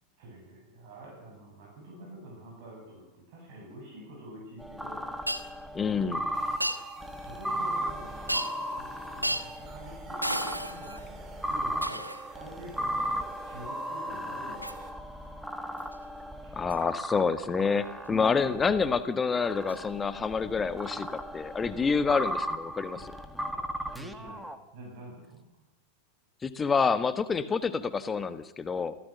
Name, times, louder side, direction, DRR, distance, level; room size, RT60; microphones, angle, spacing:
voice 1, 0.2-5.1 5.8-6.4 7.0-14.8 16.4-16.6 22.9-23.1 23.5-25.4, right 1 dB, 50° right, 0 dB, 7.9 m, -47 dB
sound 1, 4.6-19.0 19.4-24.6, equal, 5° right, 1.6 m, -36 dB
Shatter, 5.3-5.5 6.6-6.8 8.3-8.7 9.2-9.5 10.2-11.1 11.8-12.3 14.6-14.8 15.8-15.9 16.7-16.8 19.7-19.8 20.9-21.0, equal, 90° right, 1.2 m, -32 dB
voice 2, 5.7-6.2 16.5-23.1 26.4-29.0, left 5 dB, 15° left, 12 dB, 1.3 m, -28 dB
sound 2, 6.3-14.9, right 6 dB, 30° right, 3.3 m, -51 dB
28.5 x 15.5 x 6.6 m, 0.86 s
figure-of-eight pair, 90°, 0 cm